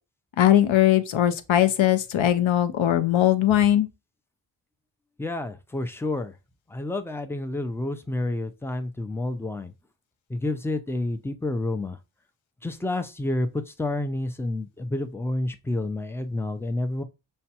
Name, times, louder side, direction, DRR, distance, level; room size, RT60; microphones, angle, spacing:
voice 1, 0.4-3.9, left 12 dB, 80° left, 0.6 m, -20 dB
voice 2, 5.2-6.3 6.7-9.7 10.3-12.0 12.6-17.0, left 2 dB, 5° left, 0.4 m, -29 dB
5.7 x 2.2 x 2.8 m
wide cardioid pair, 75°, 46 cm